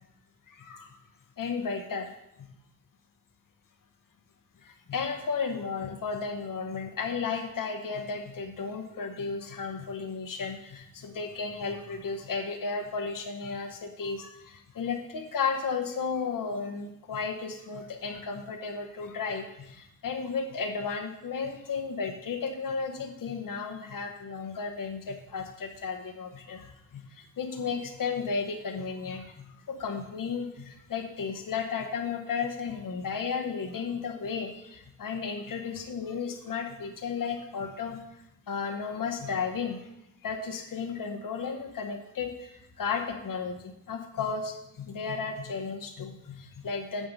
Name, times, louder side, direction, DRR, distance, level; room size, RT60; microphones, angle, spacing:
voice 1, 0.5-1.0 1.4-2.1 4.6-39.9 40.2-47.1, left 5 dB, 75° left, 4 dB, 1.0 m, -34 dB
7.7 x 7.2 x 5.3 m, 0.84 s
wide cardioid pair, 115°, 33 cm